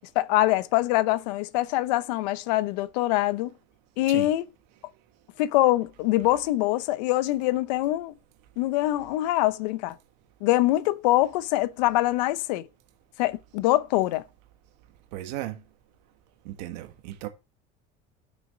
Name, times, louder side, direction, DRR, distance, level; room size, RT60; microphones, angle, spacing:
voice 1, 0.1-3.5 4.0-4.4 5.4-8.1 8.6-10.0 10.4-12.7 13.2-14.2, left 16 dB, 90° left, 0.7 m, -24 dB
voice 2, 15.1-15.6 16.4-17.3, right 14 dB, 85° right, 1.6 m, -35 dB
6.4 x 6.3 x 6.4 m
cardioid pair, 175°, 21 cm